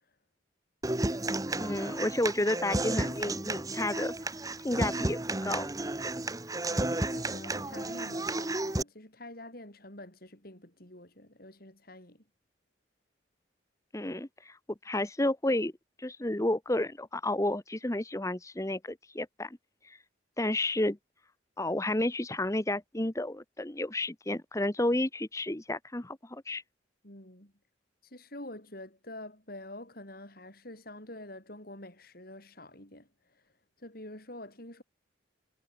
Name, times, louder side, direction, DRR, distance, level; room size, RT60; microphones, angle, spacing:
Human voice / Acoustic guitar, 0.8-8.8, right 2 dB, 20° right, 1.1 m, -32 dB
voice 1, 1.6-4.1 4.6-5.7 13.9-14.6 14.8-15.7 16.0-19.6 19.8-20.0 20.4-21.0 21.6-26.6, left 1 dB, 15° left, 1.0 m, -31 dB
voice 2, 6.7-12.2 27.0-27.5 28.0-33.4 33.8-34.8, left 1 dB, 50° left, 6.8 m, -47 dB
head